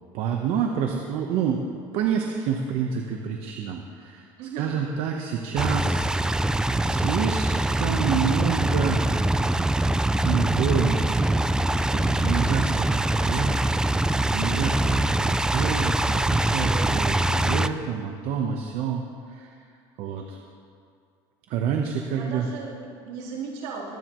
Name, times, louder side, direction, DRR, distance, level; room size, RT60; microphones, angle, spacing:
voice 1, 0.1-4.3 4.6-6.1 6.8-7.5 7.7-9.0 10.2-11.5 11.9-19.5 20.0-20.4 21.5-22.5, right 7 dB, 70° right, 2 dB, 1.0 m, -28 dB
voice 2, 4.4-4.7 16.6-17.5 22.1-24.0, right 5 dB, 85° right, -6 dB, 3.5 m, -37 dB
sound 1, 5.6-17.7, right 1 dB, 5° right, 0.4 m, -23 dB
23.0 x 9.6 x 3.1 m, 2.4 s
supercardioid pair, 115°, 10 cm